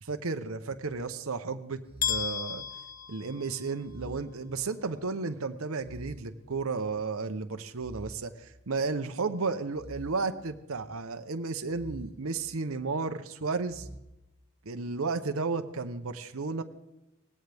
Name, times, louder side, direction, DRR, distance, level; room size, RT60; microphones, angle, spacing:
voice 1, 0.0-2.6 3.1-13.9 14.6-16.6, right 4 dB, 80° right, 8 dB, 0.9 m, -33 dB
sound 1, 1.1-1.2 1.9-3.1 3.8-5.1 5.8-7.1 7.8-9.1 9.7-11.0 11.7-13.0 13.7-14.0, right 1 dB, 25° right, 1.8 m, -49 dB
sound 2, 2.0-4.0, left 8 dB, 40° left, 0.8 m, -34 dB
19.0 x 16.0 x 3.5 m, 0.95 s
head